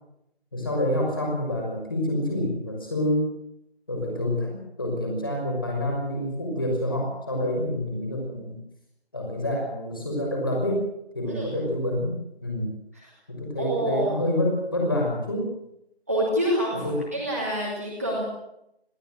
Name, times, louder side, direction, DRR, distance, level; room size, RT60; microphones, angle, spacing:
voice 1, 0.5-3.3 3.9-8.6 9.1-10.9 11.1-12.8 13.3-15.5 16.7-17.0, left 1 dB, 20° left, 0 dB, 5.8 m, -27 dB
voice 2, 13.6-14.2 16.1-16.8 17.1-18.2, equal, 15° right, -6 dB, 2.7 m, -26 dB
21.5 x 17.5 x 7.9 m, 0.81 s
figure-of-eight pair, 175°, 32 cm